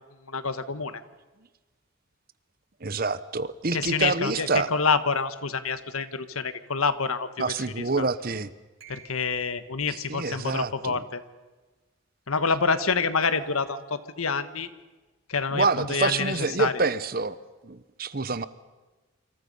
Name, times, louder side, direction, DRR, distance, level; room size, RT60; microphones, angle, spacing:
voice 1, 0.3-1.0 3.7-8.1 8.9-11.2 12.3-14.7 15.3-16.7, left 5 dB, 90° left, 12 dB, 1.4 m, -27 dB
voice 2, 2.8-4.7 7.4-8.5 9.9-11.0 15.5-17.4 17.6-18.4, right 4 dB, 45° right, 15 dB, 0.9 m, -27 dB
sound 1, 8.8-9.7 13.2-14.4, right 3 dB, 70° right, 5.6 m, -50 dB
28.5 x 26.0 x 5.5 m, 1.2 s
head